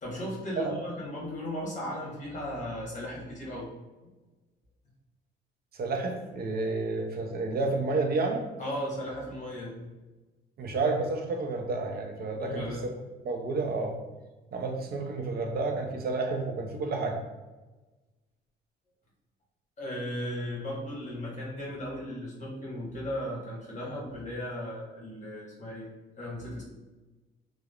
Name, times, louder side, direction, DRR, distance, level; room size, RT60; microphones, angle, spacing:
voice 1, 0.0-3.7 8.6-9.9 12.4-12.9 19.8-25.9 26.2-26.6, equal, 35° left, -4 dB, 1.1 m, -36 dB
voice 2, 5.7-8.4 10.6-12.9 13.2-14.0 14.5-17.2, right 3 dB, 50° right, 3 dB, 0.5 m, -30 dB
2.9 x 2.0 x 2.3 m, 1.2 s
cardioid pair, 90°, 20 cm